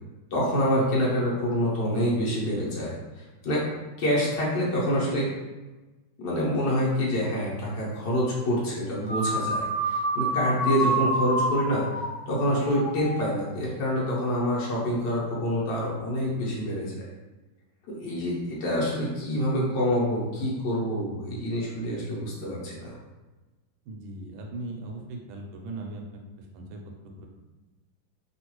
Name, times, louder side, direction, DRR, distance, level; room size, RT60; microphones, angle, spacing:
voice 1, 0.3-3.6 4.0-5.3 6.2-11.9 12.3-16.9 17.9-23.0, equal, 65° left, -5 dB, 1.5 m, -27 dB
sound 1, 9.0-13.6, right 1 dB, 85° left, 1.5 m, -28 dB
voice 2, 23.9-27.3, right 2 dB, 80° right, 1 dB, 1.4 m, -39 dB
3.6 x 2.4 x 3.0 m, 1.2 s
omnidirectional pair, 2.2 m